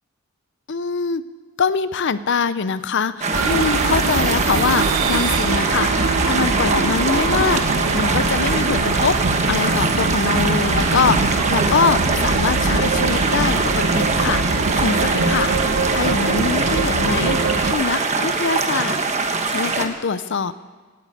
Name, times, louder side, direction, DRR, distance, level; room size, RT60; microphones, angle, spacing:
voice 1, 0.7-1.2 1.6-9.2 9.5-19.0 19.5-20.5, left 5 dB, 55° left, 14 dB, 0.5 m, -23 dB
sound 1, 3.2-19.9, right 4 dB, 30° right, 1.2 m, -22 dB
sound 2, 3.3-17.7, right 3 dB, 70° right, 1.1 m, -22 dB
17.5 x 9.2 x 8.6 m, 1.4 s
head